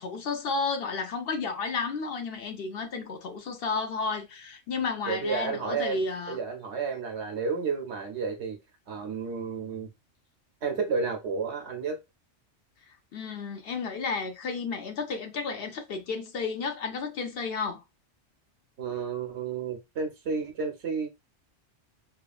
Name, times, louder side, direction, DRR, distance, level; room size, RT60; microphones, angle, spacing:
voice 1, 0.0-6.4 13.1-17.8, left 4 dB, 60° left, 0.7 m, -32 dB
voice 2, 5.1-6.0 6.3-8.6 8.9-9.9 10.6-12.0 18.8-21.1, right 5 dB, 65° right, 0.9 m, -31 dB
2.9 x 2.3 x 2.3 m
omnidirectional pair, 1.2 m